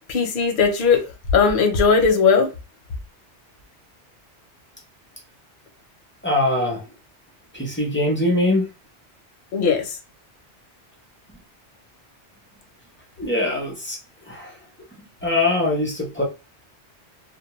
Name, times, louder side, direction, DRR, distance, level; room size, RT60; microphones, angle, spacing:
voice 1, 0.1-2.5 9.5-10.0, left 5 dB, 55° left, 0.7 m, -18 dB
voice 2, 6.2-6.8 7.5-8.7 13.2-14.0 14.3-14.5 15.2-16.2, left 2 dB, 15° left, 0.5 m, -22 dB
2.2 x 2.2 x 3.0 m
omnidirectional pair, 1.2 m